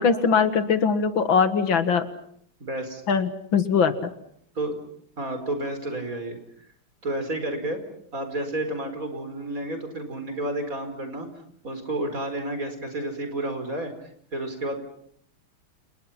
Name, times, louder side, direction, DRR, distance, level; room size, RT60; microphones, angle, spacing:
voice 1, 0.0-2.1 3.1-3.9, left 6 dB, 75° left, 11 dB, 2.4 m, -21 dB
voice 2, 2.6-3.0 4.6-4.8 5.2-6.4 7.0-7.8 8.1-11.3 11.6-14.8, right 1 dB, 40° right, 7 dB, 5.2 m, -31 dB
29.5 x 29.5 x 5.9 m, 0.64 s
omnidirectional pair, 2.2 m